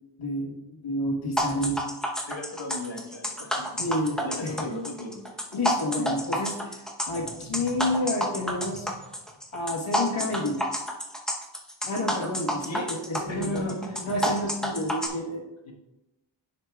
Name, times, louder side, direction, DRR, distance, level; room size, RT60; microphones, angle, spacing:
voice 1, 0.2-1.8 3.8-4.7 5.5-9.0 9.5-10.6 11.8-13.8 14.0-15.5, left 1 dB, 90° left, -1 dB, 1.5 m, -30 dB
sound 1, 1.4-15.1, equal, ahead, 0.8 m, -29 dB
voice 2, 2.3-3.8 4.2-5.4 5.9-6.2 12.6-12.9 13.3-14.0 15.0-15.1 15.6-15.7, left 1 dB, 65° left, 0 dB, 1.6 m, -37 dB
9.6 x 6.7 x 2.3 m, 0.97 s
wide cardioid pair, 90°, 48 cm